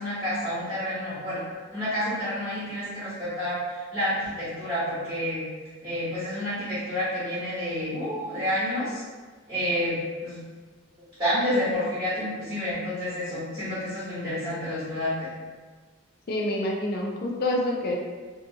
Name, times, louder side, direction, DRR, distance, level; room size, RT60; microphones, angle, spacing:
voice 1, 0.0-1.4 1.7-5.4 5.8-9.0 9.5-10.4 11.2-15.3, equal, 15° right, -12 dB, 1.0 m, -29 dB
voice 2, 16.3-18.0, left 1 dB, 45° left, 0 dB, 0.4 m, -27 dB
2.7 x 2.6 x 2.7 m, 1.4 s
head